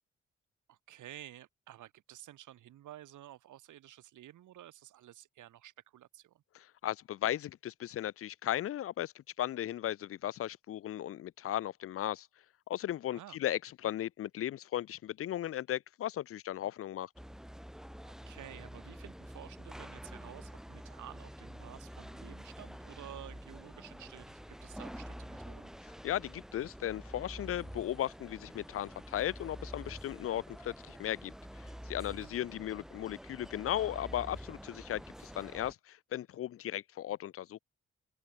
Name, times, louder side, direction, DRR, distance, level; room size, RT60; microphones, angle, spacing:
voice 1, 0.7-6.4 13.1-13.4 18.0-25.7 32.1-32.3, right 13 dB, 75° right, 2.4 m, -52 dB
voice 2, 6.5-12.3 12.7-17.1 26.0-37.6, left 12 dB, 45° left, 0.4 m, -36 dB
sound 1, 17.2-35.7, equal, ahead, 1.2 m, -48 dB
open air
hypercardioid pair, 45°, 31 cm